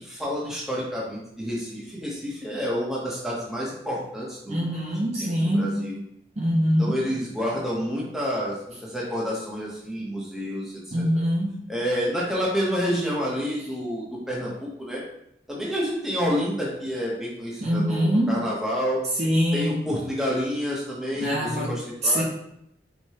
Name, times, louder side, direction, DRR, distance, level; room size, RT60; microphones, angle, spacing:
voice 1, 0.0-6.0 6.8-11.2 11.7-15.0 15.5-19.1 19.5-22.2, equal, ahead, -5 dB, 0.8 m, -29 dB
voice 2, 4.5-5.9 6.4-7.0 10.9-11.7 17.6-18.4 19.2-19.8 21.2-21.8 22.0-22.2, equal, 40° right, -3 dB, 0.6 m, -24 dB
4.6 x 2.2 x 2.8 m, 0.76 s
head